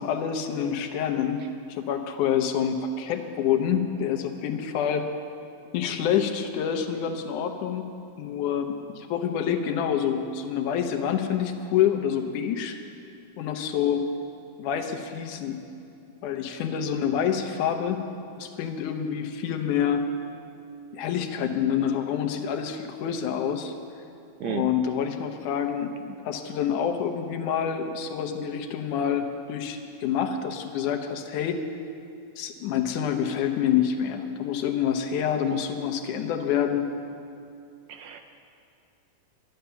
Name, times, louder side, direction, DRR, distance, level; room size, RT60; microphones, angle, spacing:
voice 1, 0.0-1.4 1.7-5.1 5.7-7.8 8.2-12.8 13.4-14.1 14.6-15.6 16.2-18.0 18.4-20.0 20.9-23.7 24.4-31.6 32.4-36.9, left 8 dB, 85° left, 5 dB, 2.3 m, -27 dB
voice 2, 37.9-38.2, right 10 dB, 80° right, 6 dB, 1.6 m, -32 dB
11.5 x 11.5 x 6.8 m, 2.5 s
omnidirectional pair, 3.5 m